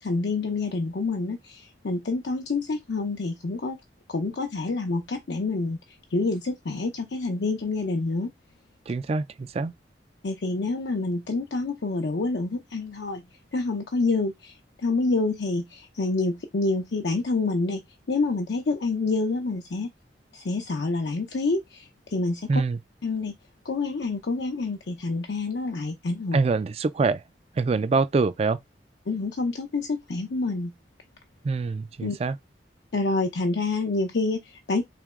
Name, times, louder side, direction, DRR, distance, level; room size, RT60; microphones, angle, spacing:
voice 1, 0.0-3.8 4.1-5.8 6.1-8.3 10.2-13.2 13.5-17.8 18.1-19.9 20.3-22.6 23.0-23.3 23.6-26.4 29.1-30.7 32.0-32.2 32.9-34.8, left 3 dB, 75° left, 0.6 m, -27 dB
voice 2, 8.9-9.7 22.5-22.8 26.3-27.2 27.6-28.6 31.4-32.4, right 4 dB, 35° right, 0.3 m, -25 dB
3.3 x 2.9 x 3.6 m
head